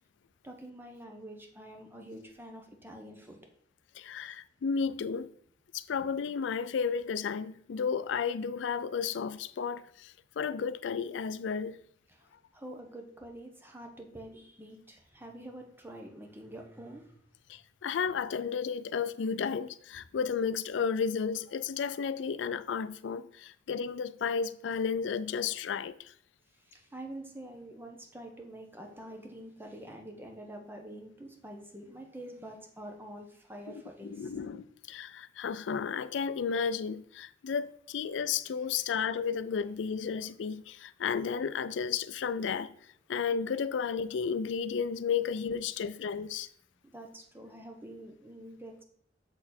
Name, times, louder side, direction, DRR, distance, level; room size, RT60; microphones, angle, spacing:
voice 1, 0.4-3.4 12.1-17.2 23.1-23.2 26.5-34.3 46.8-48.8, right 1 dB, 10° right, 1.0 m, -46 dB
voice 2, 3.9-5.3 5.7-11.8 17.5-26.1 34.0-42.7 43.1-46.5, left 6 dB, 80° left, 0.4 m, -33 dB
6.6 x 4.2 x 4.3 m
head